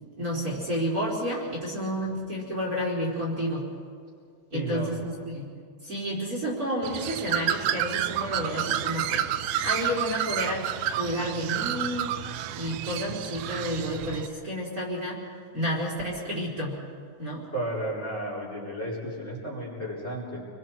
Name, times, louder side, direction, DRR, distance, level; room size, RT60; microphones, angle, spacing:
voice 1, 0.2-3.7 4.5-5.4 5.8-9.2 9.6-10.7 11.0-12.1 12.5-15.2 15.5-16.8 17.2-17.4, equal, 25° right, -4 dB, 4.3 m, -30 dB
voice 2, 4.5-4.9 17.5-20.5, right 1 dB, 20° left, -4 dB, 4.1 m, -33 dB
Bird, 6.8-14.3, right 10 dB, 85° right, 1.4 m, -30 dB
29.5 x 23.0 x 4.6 m, 2.2 s
omnidirectional pair, 3.7 m